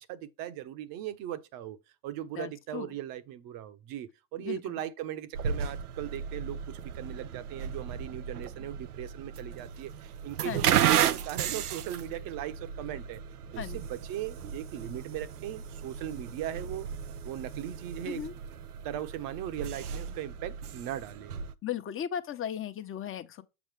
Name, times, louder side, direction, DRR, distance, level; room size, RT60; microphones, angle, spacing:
voice 1, 0.0-1.8 2.0-13.2 13.5-16.9 17.2-18.2 18.8-21.3, right 12 dB, 50° right, 1.1 m, -38 dB
voice 2, 2.4-2.9 4.4-4.8 10.4-10.7 13.6-13.8 18.0-18.3 21.6-23.4, left 9 dB, 30° left, 1.1 m, -36 dB
sound 1, 5.3-21.5, right 9 dB, 85° right, 0.7 m, -34 dB
7.3 x 5.0 x 3.4 m
hypercardioid pair, 85°, 44 cm